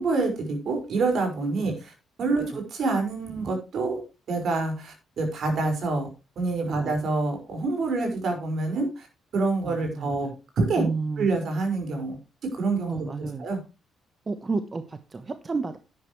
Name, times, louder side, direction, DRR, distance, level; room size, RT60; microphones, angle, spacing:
voice 1, 0.0-1.9 2.2-4.0 4.3-6.1 6.4-9.1 9.3-10.3 10.6-10.9 11.2-12.2 12.5-13.6, right 3 dB, 65° right, 4 dB, 5.5 m, -27 dB
voice 2, 9.6-10.4 10.8-11.3 12.9-13.5 14.3-15.8, right 4 dB, 30° right, 9 dB, 1.1 m, -31 dB
11.0 x 10.5 x 3.2 m, 0.29 s
cardioid pair, 90°, 0 cm